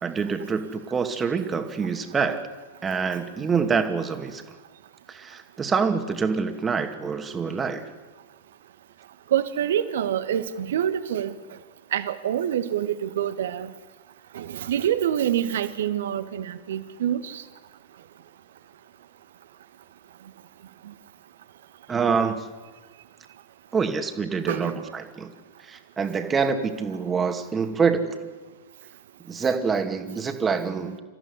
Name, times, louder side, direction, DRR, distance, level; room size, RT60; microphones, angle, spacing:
voice 1, 0.0-2.4 2.8-4.4 5.1-7.8 21.9-22.4 23.7-25.3 25.7-28.2 29.2-31.0, right 5 dB, 20° right, 6 dB, 2.4 m, -26 dB
voice 2, 9.3-11.3 11.9-13.7 14.3-17.4 24.5-24.9, right 10 dB, 60° right, 12 dB, 1.6 m, -26 dB
28.0 x 15.0 x 9.9 m, 1.3 s
figure-of-eight pair, 90°, 0 cm